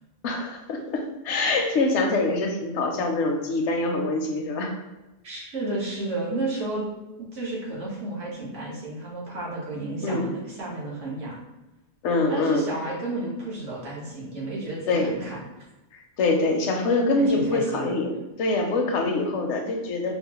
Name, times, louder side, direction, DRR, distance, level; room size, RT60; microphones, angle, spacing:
voice 1, 0.2-4.7 10.0-10.3 12.0-12.7 14.9-15.2 15.9-18.1 18.4-20.1, left 2 dB, 80° left, 2 dB, 0.9 m, -24 dB
voice 2, 5.2-6.8 7.2-11.4 12.3-15.4 17.3-18.0, right 2 dB, 85° right, -6 dB, 1.5 m, -32 dB
4.1 x 2.0 x 2.9 m, 1.0 s
omnidirectional pair, 1.2 m